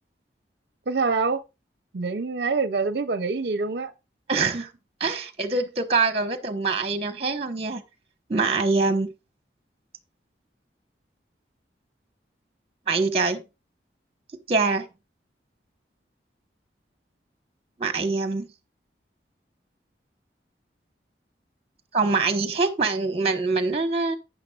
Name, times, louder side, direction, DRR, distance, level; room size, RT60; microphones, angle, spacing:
voice 1, 0.9-1.4 1.9-3.9, right 4 dB, 65° right, 0.5 m, -25 dB
voice 2, 4.3-4.7 5.0-7.8 8.3-9.1 12.9-13.4 14.5-14.9 17.8-18.5 21.9-24.2, right 4 dB, 35° right, 1.1 m, -24 dB
12.0 x 9.0 x 2.4 m
head